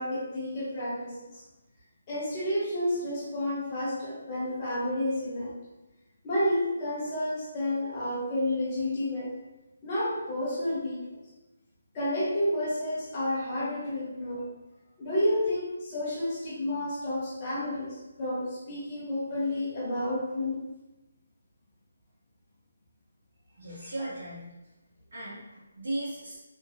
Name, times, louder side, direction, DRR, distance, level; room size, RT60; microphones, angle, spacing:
voice 1, 0.0-1.4 2.1-5.5 6.2-9.3 9.8-11.2 11.9-14.5 15.0-20.6 23.8-24.1, left 1 dB, 20° left, -7 dB, 0.8 m, -30 dB
voice 2, 23.6-24.4 25.1-26.4, right 1 dB, 65° right, -10 dB, 1.1 m, -36 dB
2.8 x 2.7 x 2.7 m, 1.0 s
hypercardioid pair, 175°, 0 cm